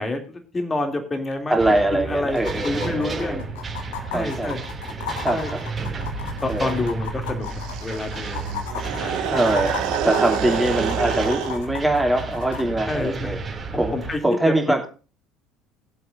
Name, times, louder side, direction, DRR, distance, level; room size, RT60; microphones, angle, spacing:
voice 1, 0.0-1.6 1.9-3.4 4.1-4.6 5.3-5.5 6.4-8.6 9.0-9.3 12.9-13.3 13.9-14.2 14.5-14.6, left 2 dB, 25° left, 5 dB, 2.7 m, -28 dB
sound 1, 1.3-1.4 1.6-1.7 2.3-12.6 14.3-14.4, left 8 dB, 70° left, 1.6 m, -35 dB
voice 2, 1.5-3.4 4.1-4.6 5.2-5.6 6.5-6.8 9.3-13.4 13.7-13.9 14.2-14.9, right 1 dB, 5° right, 2 dB, 2.8 m, -23 dB
sound 2, 1.6-14.2, right 4 dB, 30° right, 2.6 m, -32 dB
sound 3, 7.4-11.6, right 9 dB, 60° right, 1.6 m, -27 dB
20.5 x 7.7 x 2.6 m, 0.35 s
figure-of-eight pair, 65°, 0 cm